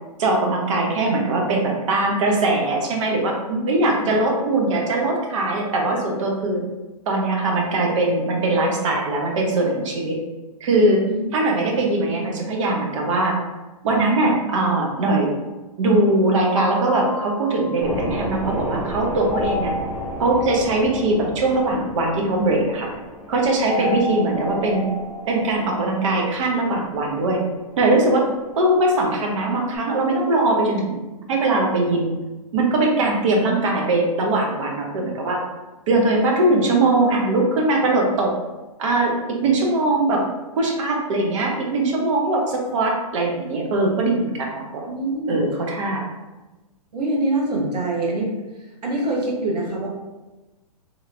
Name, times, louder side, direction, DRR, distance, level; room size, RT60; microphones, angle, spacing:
voice 1, 0.2-3.3 3.7-6.6 7.1-10.2 10.6-11.0 11.3-13.4 13.8-15.3 15.8-19.7 20.2-22.9 23.3-24.9 25.3-27.4 27.8-28.3 28.6-31.0 31.3-32.1 32.5-35.4 35.9-38.3 38.8-39.1 39.4-40.2 40.6-44.8 45.3-46.0, right 2 dB, 50° right, 0 dB, 0.8 m, -21 dB
voice 2, 3.5-4.1 11.1-11.3 23.8-23.9 44.9-45.4 46.9-48.3 48.8-49.9, right 2 dB, 85° right, -2 dB, 1.1 m, -24 dB
sound 1, 16.6-18.3 19.3-21.8 23.7-25.8, left 3 dB, 70° left, 0.5 m, -32 dB
sound 2, 17.8-29.8, equal, 10° right, 0.8 m, -34 dB
2.9 x 2.8 x 2.5 m, 1.1 s
hypercardioid pair, 145°, 20 cm